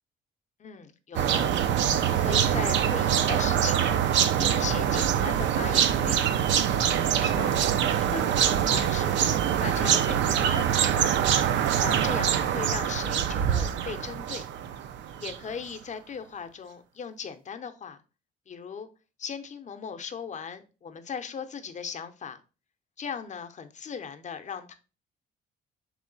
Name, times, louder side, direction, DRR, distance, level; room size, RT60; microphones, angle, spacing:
voice 1, 0.6-1.5 2.1-4.0 4.4-6.4 7.0-7.6 7.9-11.1 11.8-14.4 15.2-18.0 18.5-18.9 19.2-22.4 23.0-24.7, left 6 dB, 35° left, 0.6 m, -38 dB
sound 1, 1.1-15.5, right 9 dB, 70° right, 0.4 m, -24 dB
3.6 x 3.1 x 3.9 m
cardioid pair, 90°, 20 cm